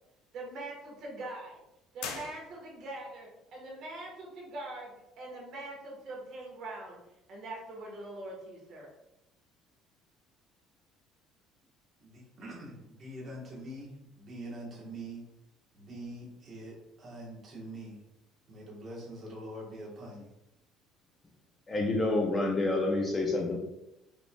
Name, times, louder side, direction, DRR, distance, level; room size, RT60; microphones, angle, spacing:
voice 1, 0.3-1.6 1.9-7.0 7.3-8.9, right 2 dB, 45° right, -2 dB, 1.3 m, -43 dB
sound 1, 2.0-3.0, left 6 dB, 80° left, 0.5 m, -42 dB
voice 2, 12.0-13.9 14.2-15.2 15.7-18.0 18.5-20.3, right 1 dB, 25° right, -4 dB, 1.2 m, -44 dB
voice 3, 21.7-23.6, left 2 dB, 15° left, 0 dB, 0.4 m, -28 dB
5.0 x 3.2 x 2.2 m, 0.89 s
cardioid pair, 180°, 0 cm